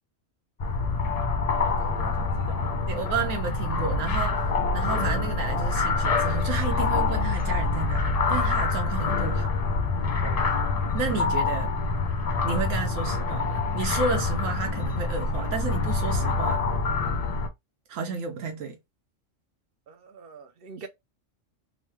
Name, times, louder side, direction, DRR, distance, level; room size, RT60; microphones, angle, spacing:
sound 1, 0.6-17.5, left 4 dB, 55° left, 0.4 m, -26 dB
voice 1, 1.5-3.2 10.2-10.4 19.9-20.9, right 5 dB, 60° right, 0.7 m, -43 dB
voice 2, 2.9-4.5 4.7-9.5 10.9-11.7 12.4-16.6 17.9-18.8, right 5 dB, 85° right, 1.0 m, -32 dB
3.0 x 2.1 x 3.1 m
omnidirectional pair, 1.3 m